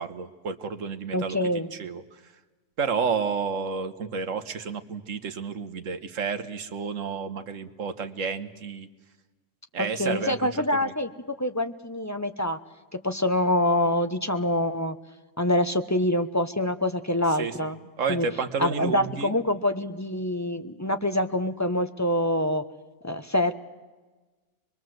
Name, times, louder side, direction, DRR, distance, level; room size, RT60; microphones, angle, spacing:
voice 1, 0.0-2.2 2.8-8.9 9.7-10.9 17.4-17.7 18.0-19.3, right 5 dB, 55° right, 9 dB, 1.6 m, -31 dB
voice 2, 1.1-1.7 9.8-12.6 12.9-15.0 15.4-17.8 18.1-18.3 18.6-22.6 23.0-23.5, left 1 dB, 15° left, 8 dB, 0.7 m, -25 dB
23.5 x 22.5 x 7.9 m, 1.3 s
omnidirectional pair, 1.6 m